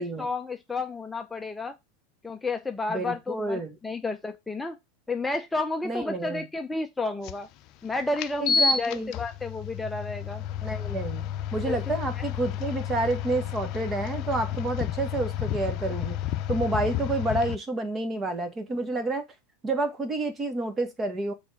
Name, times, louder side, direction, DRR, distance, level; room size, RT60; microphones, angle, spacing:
voice 1, 0.0-1.8 2.2-4.8 5.1-7.5 7.8-10.4 11.7-11.8 12.2-12.3, left 3 dB, 10° left, 0.7 m, -31 dB
voice 2, 2.9-3.8 5.8-6.5 8.4-9.1 10.6-16.2 16.5-19.2 19.6-21.3, right 2 dB, 25° right, 1.7 m, -29 dB
sound 1, 7.2-7.3 8.2-17.6, left 7 dB, 50° left, 0.6 m, -30 dB
6.3 x 4.0 x 4.9 m
hypercardioid pair, 100°, 0 cm